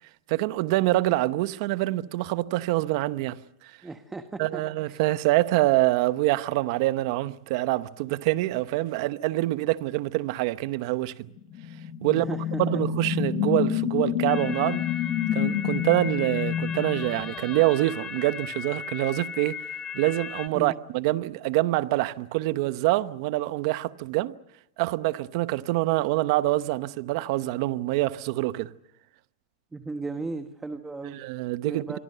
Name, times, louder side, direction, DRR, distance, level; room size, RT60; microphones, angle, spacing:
voice 1, 0.3-3.8 4.4-11.3 12.0-12.3 12.6-14.8 15.3-24.3 24.8-28.7 31.1-32.0, right 18 dB, 55° right, 0.9 m, -26 dB
voice 2, 3.8-4.6 4.9-5.0 12.1-12.8 20.5-20.8 29.7-31.2 31.6-32.0, right 3 dB, 10° right, 1.3 m, -36 dB
sound 1, 11.4-17.9, left 9 dB, 40° left, 2.3 m, -29 dB
sound 2, 14.3-20.5, left 7 dB, 20° left, 1.9 m, -37 dB
27.5 x 23.5 x 6.8 m
supercardioid pair, 140°, 3 cm